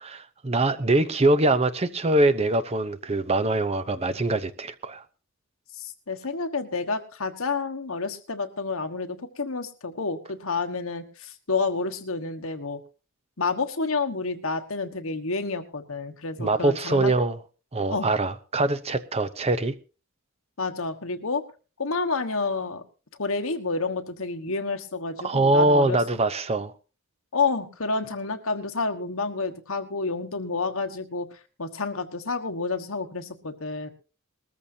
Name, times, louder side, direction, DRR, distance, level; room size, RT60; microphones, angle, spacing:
voice 1, 0.4-5.0 16.4-17.4 17.7-19.7 25.2-26.7, right 2 dB, 30° right, 0.7 m, -23 dB
voice 2, 5.8-12.8 13.4-17.1 17.9-18.1 20.6-21.4 21.8-22.8 23.2-26.0 27.3-31.3 31.6-33.9, left 4 dB, 65° left, 1.4 m, -29 dB
20.0 x 14.0 x 2.8 m
head